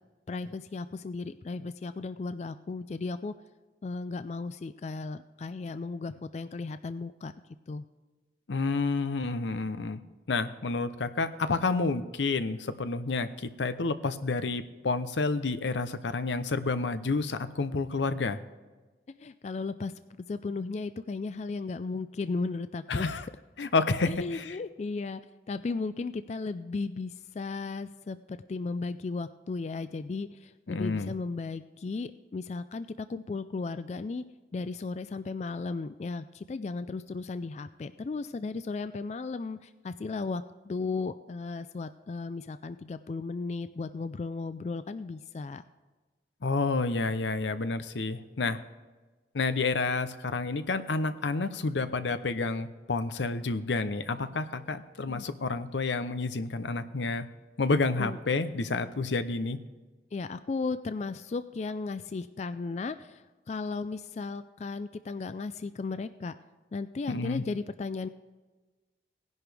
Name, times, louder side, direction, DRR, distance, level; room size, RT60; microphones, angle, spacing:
voice 1, 0.3-3.3 3.8-7.3 7.7-7.8 19.2-19.9 20.3-23.3 24.1-25.2 25.5-34.2 34.5-45.6 55.1-55.3 58.0-58.2 60.1-66.4 66.7-68.1, left 3 dB, 40° left, 12 dB, 0.3 m, -35 dB
voice 2, 8.5-10.0 10.3-18.4 22.9-23.2 23.6-24.6 30.7-31.2 46.4-48.6 49.3-57.3 57.6-59.6 67.1-67.4, left 3 dB, 85° left, 12 dB, 0.7 m, -29 dB
18.0 x 10.5 x 3.4 m, 1.3 s
head